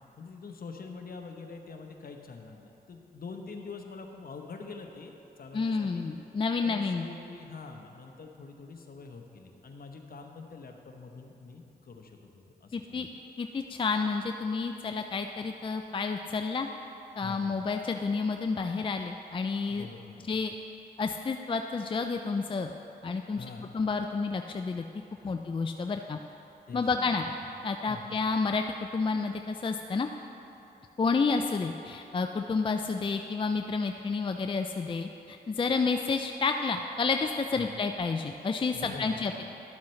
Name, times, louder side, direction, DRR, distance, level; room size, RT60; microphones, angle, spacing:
voice 1, 0.2-6.0 6.6-13.1 17.2-17.6 19.7-20.4 23.3-23.9 25.2-25.5 26.7-27.4 27.9-28.2 37.6-37.7 38.7-39.4, left 4 dB, 55° left, 4 dB, 0.9 m, -45 dB
voice 2, 5.5-7.0 12.7-13.1 13.4-16.7 17.2-19.9 20.3-20.5 21.0-22.7 23.0-23.4 23.7-24.8 25.2-26.2 26.7-27.2 27.6-28.6 28.9-30.1 31.0-39.4, left 4 dB, 30° left, 5 dB, 0.4 m, -30 dB
11.5 x 7.3 x 3.2 m, 2.9 s
cardioid pair, 55°, 18 cm